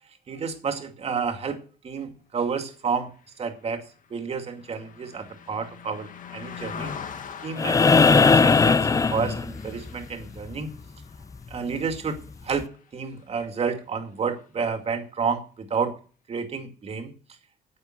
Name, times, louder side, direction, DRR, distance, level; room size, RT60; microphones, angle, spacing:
voice 1, 0.3-3.1 3.4-7.0 7.4-10.7 11.5-16.0 16.3-17.1, right 5 dB, 35° right, 6 dB, 2.3 m, -30 dB
Car passing by, 3.2-12.7 13.1-13.3, left 7 dB, 50° left, 1.6 m, -43 dB
sound 1, 7.6-9.9 11.7-11.8, left 4 dB, 20° left, 0.5 m, -18 dB
9.7 x 8.1 x 7.6 m, 0.39 s
cardioid pair, 110°, 17 cm